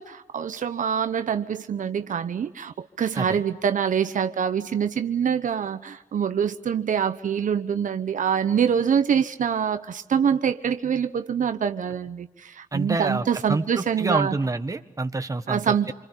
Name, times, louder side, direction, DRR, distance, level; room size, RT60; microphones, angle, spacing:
voice 1, 0.0-14.4 15.5-15.9, right 7 dB, 75° right, 1.0 m, -25 dB
voice 2, 12.7-15.9, right 3 dB, 25° right, 1.6 m, -27 dB
27.5 x 25.0 x 7.3 m
wide cardioid pair, 95°, 13 cm